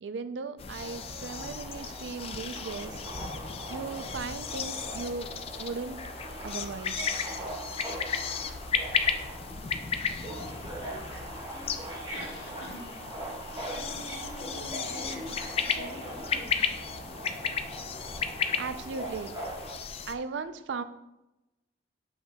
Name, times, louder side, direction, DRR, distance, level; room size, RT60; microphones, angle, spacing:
voice 1, 0.0-3.0 3.7-5.3 5.6-6.0 6.4-7.1 18.6-19.3 20.1-20.8, right 4 dB, 75° right, 12 dB, 0.4 m, -37 dB
sound 1, 0.6-20.1, left 6 dB, 30° left, 0.3 m, -35 dB
Subway metro underground, 0.8-19.7, right 1 dB, 25° right, 1.2 m, -41 dB
voice 2, 11.6-12.9 13.7-15.3 15.6-16.5, left 2 dB, 70° left, -2 dB, 1.5 m, -45 dB
7.5 x 5.5 x 2.2 m, 0.95 s
head